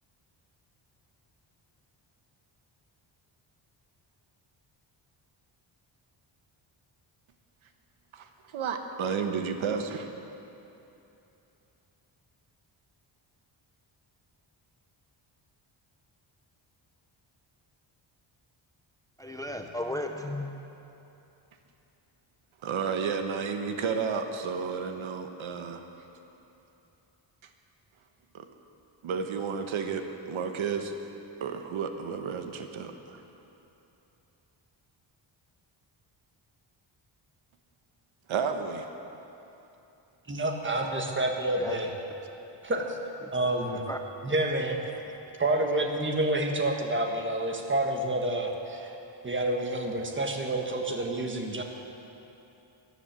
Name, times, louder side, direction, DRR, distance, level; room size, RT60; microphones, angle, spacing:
voice 1, 8.1-10.1 22.6-25.8 28.3-28.5 29.0-30.9 31.4-33.2 38.3-38.9, right 6 dB, 80° right, 6 dB, 1.2 m, -32 dB
voice 2, 19.2-20.6 41.6-41.8 43.6-44.0, left 1 dB, 5° left, 4 dB, 0.6 m, -35 dB
voice 3, 40.3-41.9 42.6-43.0 43.3-43.8 44.2-44.8 45.4-48.9 49.2-51.6, right 1 dB, 25° right, 2 dB, 1.6 m, -28 dB
14.0 x 10.0 x 7.5 m, 2.9 s
cardioid pair, 125°, 47 cm